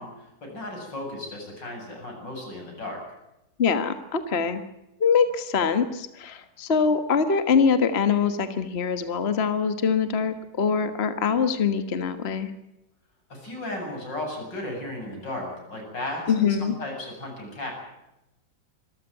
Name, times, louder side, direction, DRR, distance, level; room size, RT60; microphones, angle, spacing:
voice 1, 0.0-3.0 13.3-17.7, left 1 dB, 90° left, 1 dB, 8.8 m, -35 dB
voice 2, 3.6-4.6 5.0-12.5 16.3-16.7, left 6 dB, 40° left, 10 dB, 1.6 m, -23 dB
26.0 x 14.5 x 9.1 m, 0.91 s
omnidirectional pair, 1.9 m